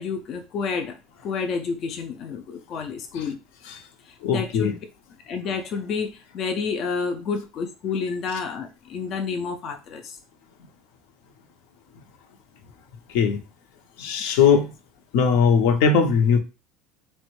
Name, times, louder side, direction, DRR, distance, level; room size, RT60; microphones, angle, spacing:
voice 1, 0.0-3.4 4.1-4.8 5.3-10.2, left 5 dB, 40° left, 0.3 m, -30 dB
voice 2, 4.2-4.7 13.1-13.4 14.0-14.7 15.1-16.4, left 6 dB, 80° left, 0.6 m, -19 dB
3.5 x 2.1 x 2.9 m
cardioid pair, 160°, 0 cm